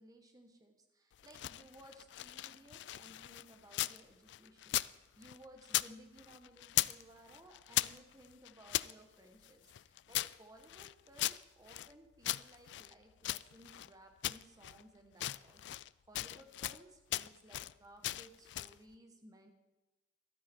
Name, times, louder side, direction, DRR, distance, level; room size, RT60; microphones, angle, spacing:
voice 1, 0.0-19.5, right 1 dB, 20° right, 4 dB, 1.2 m, -59 dB
sound 1, 1.1-4.0 4.3-5.9 6.2-7.0 7.3-8.9 9.4-11.9 12.2-13.9 14.2-14.8 15.1-16.8 17.1-17.7 18.0-18.8, left 15 dB, 65° left, 0.3 m, -38 dB
13.5 x 12.0 x 4.5 m, 1.0 s
head